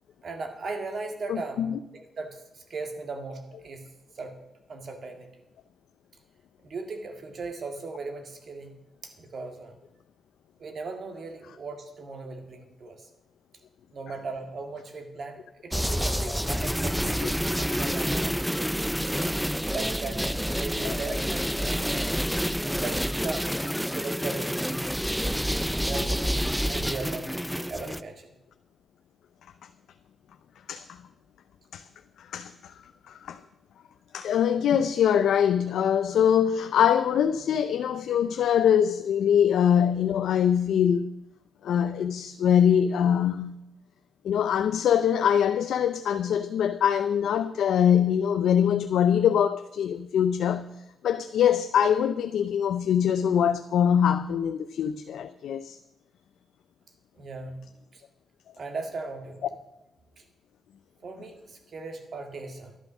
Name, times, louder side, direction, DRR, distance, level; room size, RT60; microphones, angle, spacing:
voice 1, 0.2-3.9 4.2-4.4 4.7-5.3 6.6-8.8 9.0-9.8 10.6-13.1 13.9-17.2 17.6-18.7 19.1-19.2 19.7-22.2 22.6-24.9 25.8-28.3 57.2-57.6 57.9-58.0 58.6-59.5 61.0-62.8, right 3 dB, 50° right, 1.8 m, -38 dB
voice 2, 1.3-1.8 17.2-17.3 19.3-19.4 20.8-20.9 30.7-31.0 31.7-31.8 32.2-32.8 33.1-33.4 34.1-41.1 41.6-43.6 44.2-50.7 51.0-55.8, left 8 dB, 90° left, 0.5 m, -23 dB
sound 1, 15.7-28.0, equal, ahead, 0.5 m, -28 dB
11.5 x 11.5 x 6.1 m
wide cardioid pair, 130°, 0 cm